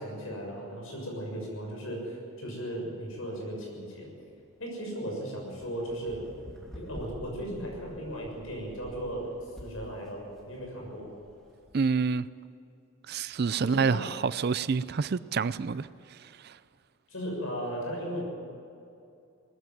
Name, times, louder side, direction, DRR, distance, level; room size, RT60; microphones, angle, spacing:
voice 1, 0.0-4.1 4.6-6.2 6.7-11.1 13.6-14.0 17.1-18.2, equal, 70° left, 6.7 m, -36 dB
sound 1, 3.8-11.8, equal, ahead, 2.8 m, -49 dB
voice 2, 11.7-12.3 13.1-16.6, right 5 dB, 45° right, 0.4 m, -28 dB
19.5 x 15.0 x 9.3 m
head